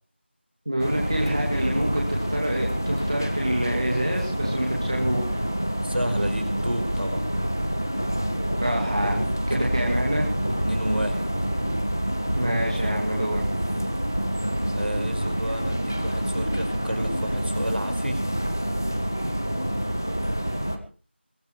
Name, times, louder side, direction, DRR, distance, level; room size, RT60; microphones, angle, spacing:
voice 1, 0.7-5.4 8.6-9.2 9.5-10.3 12.3-13.5, equal, 25° right, -2 dB, 2.5 m, -27 dB
sound 1, 0.8-20.8, equal, 15° left, 0.8 m, -27 dB
voice 2, 5.8-7.3 9.1-9.3 9.8-9.9 10.6-11.2 14.7-18.2, equal, 60° right, 7 dB, 5.1 m, -31 dB
22.5 x 16.5 x 3.3 m, 0.37 s
figure-of-eight pair, 180°, 6 cm